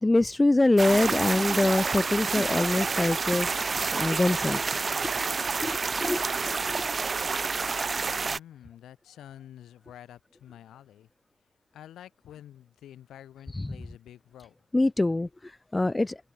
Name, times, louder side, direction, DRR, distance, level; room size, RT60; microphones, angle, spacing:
voice 1, 0.0-3.5 3.9-5.1 5.6-6.2 13.5-13.8 14.7-15.3 15.7-16.2, left 2 dB, 15° left, 0.7 m, -24 dB
sound 1, 0.8-8.4, right 4 dB, 35° right, 0.5 m, -29 dB
voice 2, 8.0-11.1 11.7-14.5, left 11 dB, 75° left, 7.6 m, -48 dB
open air
cardioid pair, 90°, 0 cm